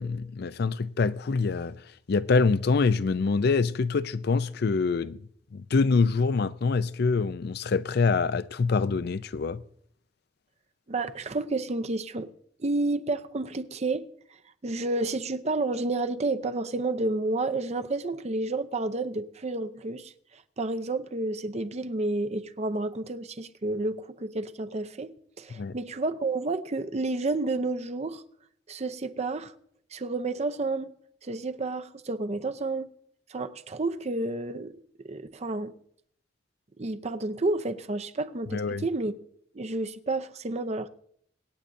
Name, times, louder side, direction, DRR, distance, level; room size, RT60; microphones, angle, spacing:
voice 1, 0.0-1.7 2.1-5.2 5.5-9.6 25.5-25.8 38.5-38.8, left 4 dB, 60° left, 0.4 m, -25 dB
voice 2, 10.9-12.3 12.6-14.1 14.6-25.1 25.4-28.2 28.7-29.5 29.9-30.9 31.2-32.9 33.3-34.8 35.0-35.7 36.8-39.1 39.5-40.9, right 2 dB, 40° right, 0.6 m, -30 dB
25.5 x 8.8 x 2.6 m
head